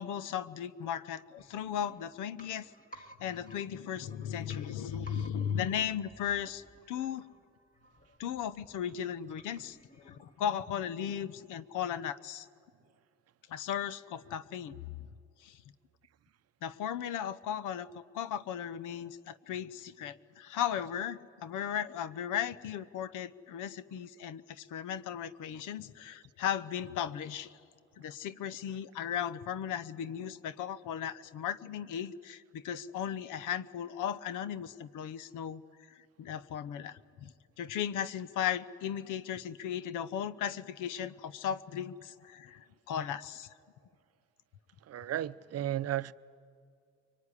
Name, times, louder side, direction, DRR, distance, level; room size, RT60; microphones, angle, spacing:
voice 1, 0.0-7.2 8.2-9.8 10.0-12.5 13.5-15.1 15.4-15.6 16.6-27.5 28.0-35.6 35.9-43.5, left 9 dB, 90° left, 0.9 m, -36 dB
sound 1, 1.4-11.1 11.4-11.5, right 1 dB, 25° left, 2.1 m, -58 dB
voice 2, 44.9-46.1, right 12 dB, 55° right, 0.6 m, -34 dB
24.0 x 23.5 x 9.9 m
cardioid pair, 90°, 30 cm